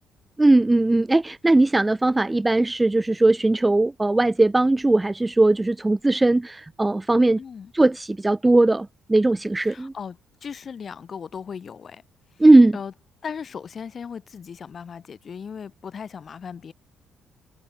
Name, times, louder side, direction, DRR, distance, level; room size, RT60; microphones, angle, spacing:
voice 1, 0.4-7.4 7.7-9.9 12.4-12.8, right 2 dB, 15° right, 0.5 m, -19 dB
voice 2, 7.4-7.7 9.6-12.0 12.7-12.9 13.2-16.7, left 6 dB, 40° left, 4.5 m, -37 dB
cardioid pair, 120°, 0 cm